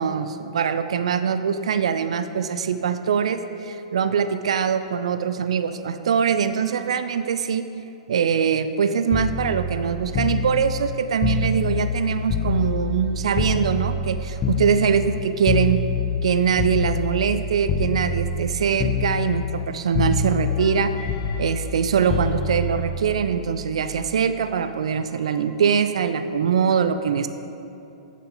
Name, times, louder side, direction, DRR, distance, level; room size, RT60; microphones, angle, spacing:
voice 1, 0.0-7.7 8.1-15.8 16.2-20.9 21.4-27.3, right 7 dB, 60° right, 10 dB, 0.4 m, -23 dB
sound 1, 9.1-13.1 13.3-17.4 17.7-18.5 18.8-19.7 19.9-23.9 25.1-25.4, left 4 dB, 25° left, 0.7 m, -26 dB
9.7 x 6.5 x 3.9 m, 2.8 s
figure-of-eight pair, 105°, 4 cm